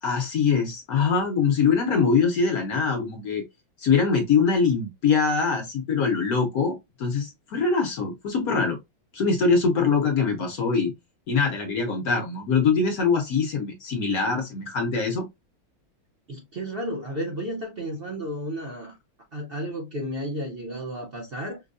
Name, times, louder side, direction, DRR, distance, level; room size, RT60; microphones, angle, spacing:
voice 1, 0.0-3.4 3.8-8.8 9.1-10.9 11.3-15.3, left 5 dB, 60° left, 1.0 m, -23 dB
voice 2, 16.3-19.0 19.3-21.6, equal, 80° right, 0.5 m, -32 dB
5.2 x 2.2 x 2.5 m
omnidirectional pair, 2.3 m